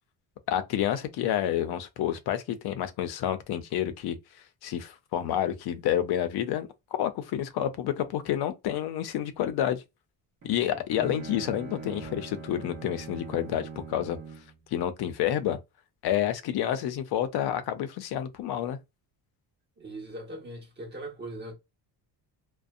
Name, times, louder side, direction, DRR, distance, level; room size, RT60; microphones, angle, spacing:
voice 1, 0.5-4.2 4.6-6.7 7.0-9.8 10.4-14.2 14.7-15.6 16.0-18.8, left 11 dB, 60° left, 0.5 m, -29 dB
Bowed string instrument, 10.4-14.6, right 5 dB, 40° right, 0.8 m, -42 dB
voice 2, 19.8-21.5, right 1 dB, 25° right, 1.2 m, -40 dB
2.6 x 2.1 x 2.4 m
cardioid pair, 175°, 44 cm